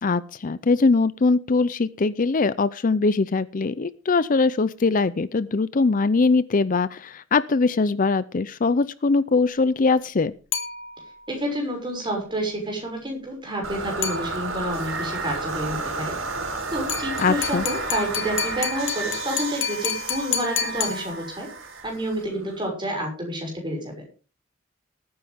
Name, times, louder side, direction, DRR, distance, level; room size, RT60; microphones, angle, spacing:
voice 1, 0.0-10.3 17.2-17.6, left 3 dB, 40° left, 16 dB, 0.5 m, -21 dB
sound 1, 10.5-11.3 14.0-14.8 16.9-21.6, left 7 dB, 65° left, 2.0 m, -30 dB
voice 2, 11.3-16.2 16.7-21.5 21.8-23.9, right 1 dB, 25° right, 1 dB, 6.3 m, -29 dB
sound 2, 13.6-22.7, right 3 dB, 85° right, 5.0 m, -32 dB
19.0 x 9.6 x 3.6 m, 0.35 s
head